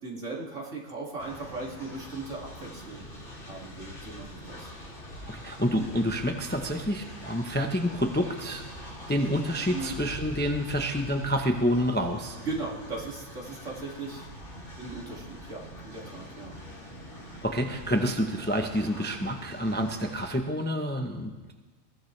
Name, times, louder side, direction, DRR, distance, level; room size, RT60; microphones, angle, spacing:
voice 1, 0.0-3.1 3.4-4.7 9.7-10.0 12.3-14.3 14.8-16.6, right 3 dB, 60° right, -3 dB, 2.8 m, -38 dB
Train, 1.2-20.3, equal, 55° left, 3.3 m, -44 dB
voice 2, 5.3-12.4 17.4-21.5, equal, 10° left, 4 dB, 0.7 m, -28 dB
21.5 x 16.0 x 3.3 m, 1.3 s
omnidirectional pair, 1.4 m